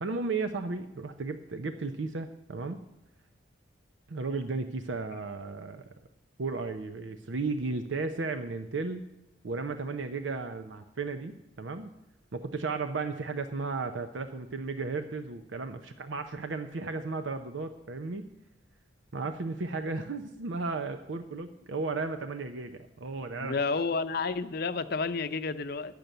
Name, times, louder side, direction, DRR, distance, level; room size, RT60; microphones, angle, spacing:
voice 1, 0.0-2.8 4.1-5.8 6.4-9.1 9.4-11.9 12.3-18.3 19.1-23.6, right 3 dB, 80° right, 8 dB, 0.7 m, -34 dB
voice 2, 23.4-25.9, left 4 dB, 55° left, 11 dB, 0.6 m, -30 dB
10.5 x 6.9 x 8.9 m, 0.89 s
head